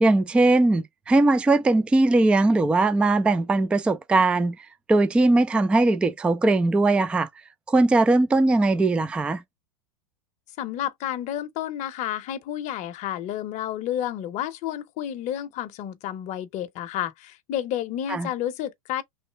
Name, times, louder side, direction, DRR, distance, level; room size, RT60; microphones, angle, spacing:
voice 1, 0.0-4.6 4.9-7.3 7.7-9.4 18.1-18.3, right 2 dB, 5° right, 0.3 m, -20 dB
voice 2, 10.6-19.0, left 11 dB, 40° left, 0.7 m, -30 dB
3.2 x 2.6 x 4.4 m
hypercardioid pair, 110°, 18 cm